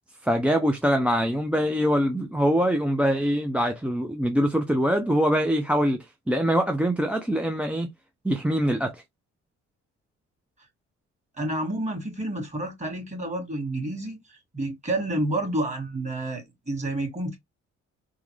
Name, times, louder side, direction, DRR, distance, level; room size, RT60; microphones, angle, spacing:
voice 1, 0.2-6.0 6.3-7.9 8.2-9.0, equal, 5° right, 0.4 m, -23 dB
voice 2, 11.4-17.4, right 1 dB, 25° right, 1.9 m, -29 dB
3.7 x 2.0 x 3.1 m
cardioid pair, 90°, 30 cm